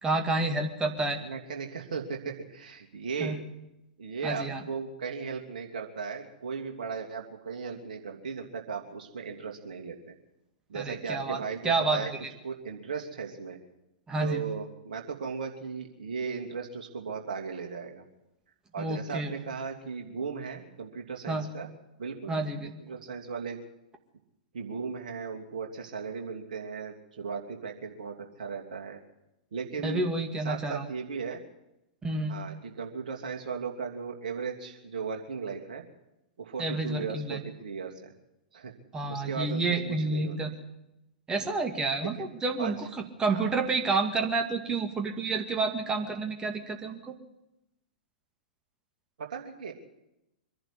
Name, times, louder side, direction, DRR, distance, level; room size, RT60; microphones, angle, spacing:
voice 1, 0.0-1.2 3.2-3.4 4.2-4.6 10.8-12.3 14.1-14.4 18.8-19.3 21.3-21.5 22.3-22.7 29.8-30.9 32.0-32.3 36.6-37.4 38.9-40.5 41.3-42.9 43.2-47.2, right 3 dB, 15° right, 5 dB, 2.1 m, -29 dB
voice 2, 1.2-3.4 4.0-10.1 10.7-12.1 12.4-13.6 14.2-18.0 18.7-21.7 22.0-22.4 22.6-23.6 24.5-29.0 29.5-30.0 30.4-31.4 32.3-35.8 36.4-38.1 38.5-38.7 39.1-40.6 42.0-42.1 42.6-42.9 43.3-43.6 49.2-49.7, right 5 dB, 55° right, 2 dB, 2.8 m, -37 dB
24.0 x 11.0 x 9.8 m, 0.91 s
figure-of-eight pair, 105°, 5 cm